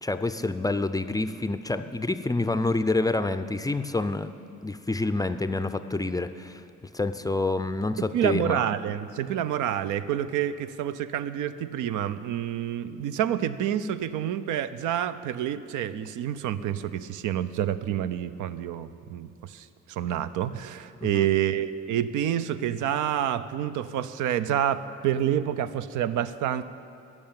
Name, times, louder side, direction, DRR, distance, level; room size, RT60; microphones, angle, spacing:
voice 1, 0.0-4.3 4.6-6.6 6.9-8.7 21.0-21.3, left 2 dB, 15° left, 10 dB, 0.4 m, -27 dB
voice 2, 8.0-26.6, right 10 dB, 85° right, 13 dB, 0.5 m, -28 dB
11.5 x 6.6 x 8.8 m, 2.7 s
cardioid pair, 90°, 30 cm